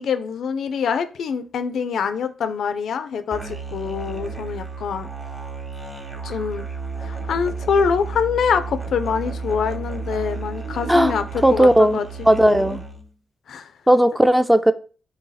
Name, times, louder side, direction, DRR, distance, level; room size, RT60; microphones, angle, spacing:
voice 1, 0.0-5.1 6.2-6.7 7.0-12.1 12.4-12.8 13.5-13.7, left 6 dB, 70° left, 0.3 m, -25 dB
Musical instrument, 3.3-13.1, right 4 dB, 20° right, 0.9 m, -32 dB
voice 2, 11.4-12.0 12.3-12.8 13.9-14.7, right 1 dB, 5° right, 0.3 m, -15 dB
3.1 x 2.7 x 3.8 m
supercardioid pair, 60°, 0 cm